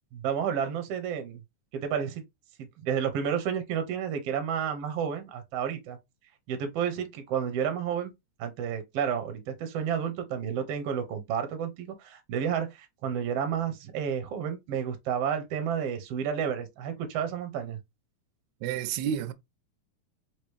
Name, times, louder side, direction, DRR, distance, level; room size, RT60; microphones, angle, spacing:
voice 1, 0.1-1.4 1.7-2.2 2.6-6.0 6.5-8.1 8.4-17.8, right 8 dB, 65° right, 1.7 m, -31 dB
voice 2, 18.6-19.3, right 9 dB, 80° right, 1.8 m, -30 dB
4.7 x 3.0 x 3.2 m
omnidirectional pair, 3.6 m